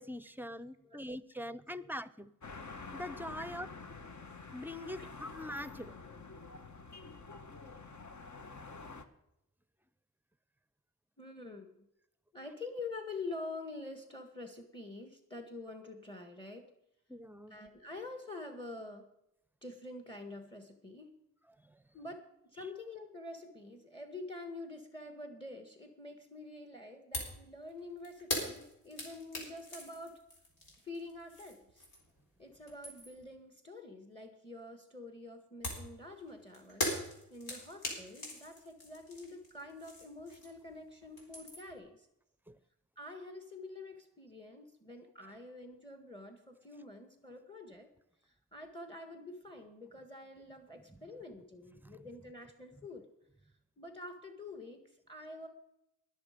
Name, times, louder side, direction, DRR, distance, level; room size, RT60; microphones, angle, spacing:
voice 1, 0.0-2.3 2.9-3.7 4.5-5.9 17.1-17.6 21.6-21.8 42.5-42.6 50.9-51.0 51.8-52.1, left 1 dB, 5° right, 15 dB, 0.7 m, -43 dB
sound 1, 2.4-9.0, left 4 dB, 55° left, 1.4 m, -48 dB
voice 2, 11.2-11.8 12.3-16.7 17.5-19.1 19.6-21.1 21.9-30.2 30.8-31.8 32.4-36.9 37.3-42.1 43.0-47.9 48.2-53.0 53.8-55.5, left 2 dB, 15° left, 5 dB, 1.7 m, -47 dB
sound 2, 27.1-27.4 27.7-32.2 32.5-33.3 35.6-40.7 41.0-41.8, left 1 dB, 85° left, 4.1 m, -41 dB
20.0 x 6.8 x 5.2 m, 0.81 s
cardioid pair, 65°, 35 cm